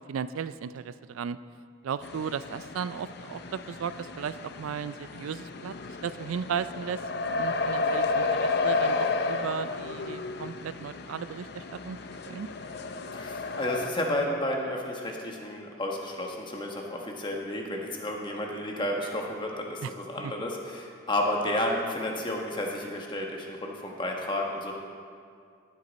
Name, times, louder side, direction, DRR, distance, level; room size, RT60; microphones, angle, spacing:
voice 1, 0.1-1.4 1.8-5.7 6.0-12.0 12.2-12.5 19.8-19.9 20.2-20.3, right 7 dB, 90° right, 14 dB, 0.4 m, -35 dB
sound 1, 2.0-13.9, left 3 dB, 50° left, 0.5 m, -32 dB
voice 2, 13.1-24.7, left 1 dB, 25° left, 0 dB, 1.2 m, -31 dB
16.0 x 8.3 x 4.1 m, 2.3 s
head